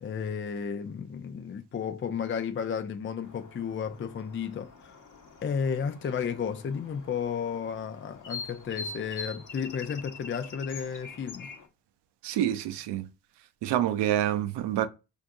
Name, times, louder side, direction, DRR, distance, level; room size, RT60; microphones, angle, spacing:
voice 1, 0.0-5.0 5.4-11.5, left 7 dB, 30° left, 0.5 m, -33 dB
sound 1, 3.2-11.7, left 4 dB, 45° left, 1.0 m, -44 dB
voice 2, 12.2-13.1 13.6-14.9, right 11 dB, 70° right, 0.6 m, -27 dB
4.5 x 2.5 x 2.6 m
supercardioid pair, 50°, 43 cm